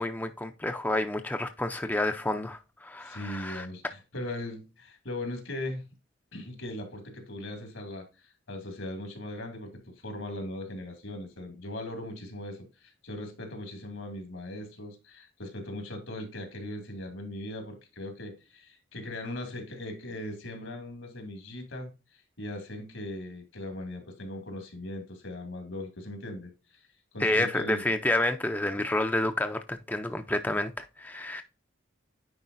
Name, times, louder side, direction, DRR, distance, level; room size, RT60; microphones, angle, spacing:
voice 1, 0.0-3.7 27.2-31.4, left 1 dB, 10° left, 0.4 m, -29 dB
voice 2, 3.0-5.8 6.3-26.9 27.1-27.8, left 1 dB, 75° left, 2.4 m, -39 dB
9.6 x 4.6 x 2.5 m
head